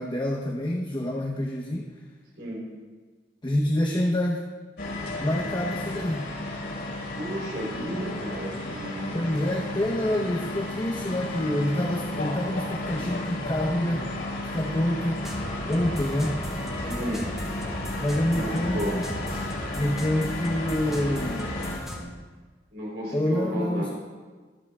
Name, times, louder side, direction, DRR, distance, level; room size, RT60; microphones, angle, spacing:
voice 1, 0.0-2.0 3.4-4.4 5.2-6.3 9.1-14.1 14.4-15.2 15.7-16.4 18.0-19.0 19.7-21.6 23.1-23.9, left 1 dB, 25° left, -1 dB, 0.9 m, -27 dB
sound 1, 4.8-21.8, left 2 dB, 70° left, 4.2 m, -33 dB
voice 2, 7.1-9.4 16.8-17.3 18.3-18.9 22.7-23.9, equal, 80° right, -5 dB, 3.8 m, -33 dB
sound 2, 15.2-22.0, equal, 5° right, 2.0 m, -36 dB
24.5 x 8.9 x 2.4 m, 1.4 s
head